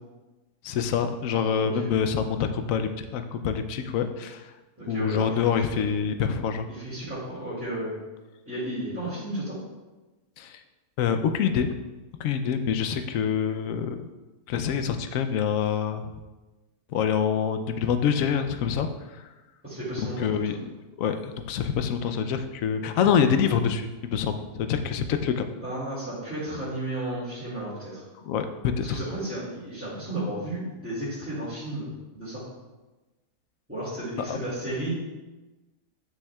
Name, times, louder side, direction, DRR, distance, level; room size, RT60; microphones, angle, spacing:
voice 1, 0.6-4.5 4.9-6.7 10.4-10.6 11.0-11.7 12.2-14.1 14.5-16.1 16.9-18.9 20.0-20.5 21.0-25.5 28.2-28.5 28.8-29.0 34.3-34.4, left 7 dB, 70° left, 8 dB, 0.9 m, -26 dB
voice 2, 4.8-5.8 6.7-7.9 8.5-9.6 19.6-20.6 25.6-28.0 28.8-32.4 33.7-34.9, right 1 dB, 10° right, -12 dB, 2.1 m, -33 dB
9.5 x 6.4 x 2.3 m, 1.2 s
omnidirectional pair, 1.6 m